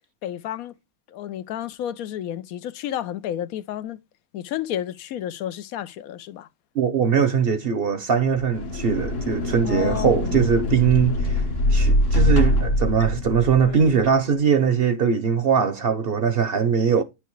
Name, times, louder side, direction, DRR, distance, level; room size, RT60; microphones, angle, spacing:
voice 1, 0.2-0.7 1.1-4.0 4.3-6.5 9.6-10.4 13.6-14.0, left 11 dB, 85° left, 1.1 m, -31 dB
voice 2, 6.7-11.4 11.7-17.0, right 6 dB, 55° right, 0.7 m, -21 dB
sound 1, 8.3-13.9, left 1 dB, 60° left, 1.4 m, -23 dB
10.0 x 4.8 x 3.0 m
omnidirectional pair, 1.5 m